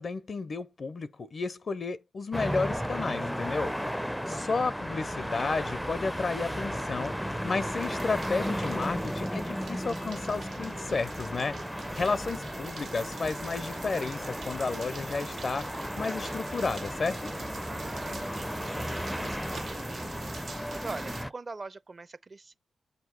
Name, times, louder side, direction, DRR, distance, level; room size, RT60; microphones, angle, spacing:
voice 1, 0.0-3.7 4.3-11.6 12.0-17.3, left 4 dB, 55° left, 0.5 m, -32 dB
sound 1, 2.3-21.3, equal, ahead, 0.4 m, -35 dB
voice 2, 4.0-4.5 11.9-12.3 17.6-22.5, right 3 dB, 45° right, 0.6 m, -44 dB
sound 2, 4.9-20.4, right 3 dB, 90° right, 1.3 m, -50 dB
sound 3, 7.7-21.2, right 4 dB, 70° right, 0.9 m, -48 dB
7.7 x 2.7 x 4.6 m
supercardioid pair, 45°, 0 cm